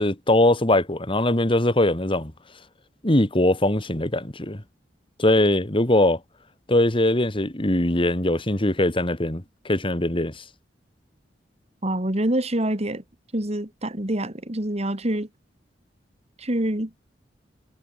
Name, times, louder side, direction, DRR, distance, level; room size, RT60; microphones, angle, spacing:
voice 1, 0.0-2.3 3.0-4.6 5.2-6.2 6.7-10.4, left 1 dB, 30° left, 2.3 m, -21 dB
voice 2, 11.8-13.0 13.3-15.3 16.4-16.9, right 1 dB, 35° right, 2.8 m, -26 dB
head